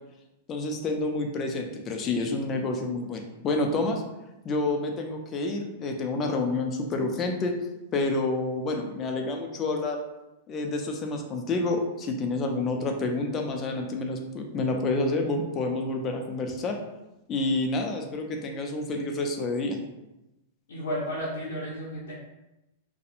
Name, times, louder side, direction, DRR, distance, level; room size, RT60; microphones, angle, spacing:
voice 1, 0.5-4.0 4.4-7.6 7.9-10.0 10.5-16.8 17.3-19.8, left 2 dB, 30° left, 3 dB, 0.4 m, -28 dB
voice 2, 20.7-22.1, equal, 85° left, -6 dB, 0.5 m, -32 dB
2.7 x 2.0 x 2.4 m, 0.94 s
hypercardioid pair, 130°, 0 cm